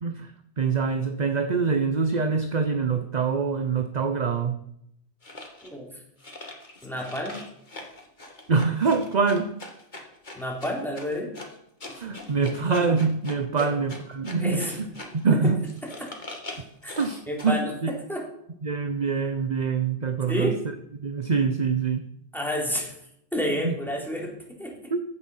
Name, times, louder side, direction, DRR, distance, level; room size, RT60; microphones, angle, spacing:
voice 1, 0.6-4.6 8.5-9.5 11.9-14.6 15.1-15.6 17.0-17.9 18.6-20.5 21.0-22.1 23.6-23.7 24.9-25.0, right 5 dB, 40° right, 8 dB, 0.9 m, -25 dB
sound 1, 5.2-5.7 6.2-15.3 15.6-17.6, left 2 dB, 40° left, 2.3 m, -42 dB
voice 2, 5.6-6.0 6.8-7.4 10.4-11.3 13.6-13.7 14.4-14.8 15.4-15.5 16.0-16.1 16.8-17.0 17.3-18.3 20.3-20.6 22.3-23.0 23.3-24.8, equal, ahead, -1 dB, 3.8 m, -30 dB
15.5 x 9.8 x 5.6 m, 0.74 s
omnidirectional pair, 1.2 m